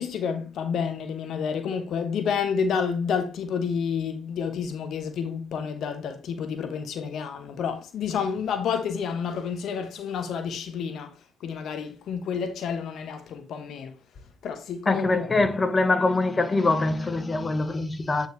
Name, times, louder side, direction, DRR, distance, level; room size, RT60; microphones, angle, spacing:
voice 1, 0.0-11.1 11.4-13.9 14.4-15.5, left 6 dB, 55° left, 1.0 m, -29 dB
voice 2, 14.9-18.3, left 2 dB, 25° left, 1.2 m, -23 dB
9.1 x 4.9 x 3.3 m
hypercardioid pair, 50°, 0 cm